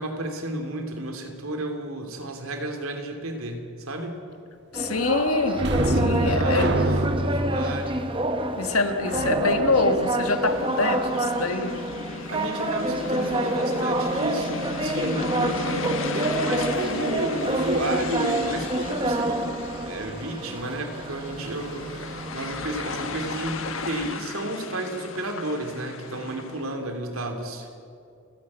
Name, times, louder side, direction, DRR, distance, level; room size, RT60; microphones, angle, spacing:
voice 1, 0.0-4.2 5.9-8.1 12.3-19.6 19.9-27.7, right 1 dB, 80° right, 4 dB, 2.9 m, -32 dB
voice 2, 4.7-6.7 8.6-11.8, left 3 dB, 90° left, 8 dB, 1.5 m, -25 dB
sound 1, 4.7-24.1, right 1 dB, 25° right, 1.0 m, -28 dB
sound 2, 5.6-10.9 18.3-18.4 18.8-19.0, right 1 dB, 55° right, 1.3 m, -27 dB
sound 3, 10.3-26.7, left 4 dB, 70° left, 1.4 m, -35 dB
30.0 x 10.5 x 8.7 m, 2.4 s
head